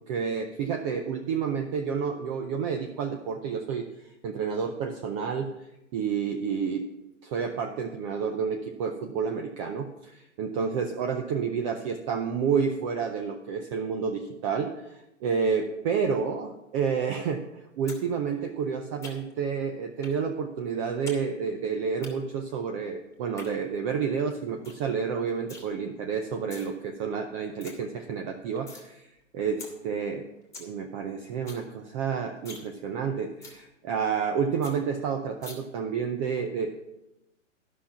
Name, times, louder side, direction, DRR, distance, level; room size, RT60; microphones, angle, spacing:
voice 1, 0.1-3.9 4.2-5.5 5.9-6.8 7.2-29.0 29.3-30.3 30.6-36.8, right 6 dB, 25° right, 5 dB, 0.6 m, -30 dB
sound 1, 17.9-18.0 18.3-19.4 20.0-20.2 20.5-21.2 21.5-22.1 23.1-23.5 24.0-24.1 24.3-24.4 24.6-24.9 25.1-25.6 26.3-26.7 27.1-27.2 27.4-27.7 28.1-28.9 29.2-29.3 29.6-29.7 30.1-30.2 30.4-30.7 31.0-31.1 31.3-31.6 32.0-32.1 32.4-32.7 33.0-33.1 33.4-33.6 34.0-34.1 34.3-34.4 34.6-34.7 35.4-35.5, left 3 dB, 10° left, 1.7 m, -44 dB
11.5 x 5.8 x 5.9 m, 0.93 s
hypercardioid pair, 130°, 39 cm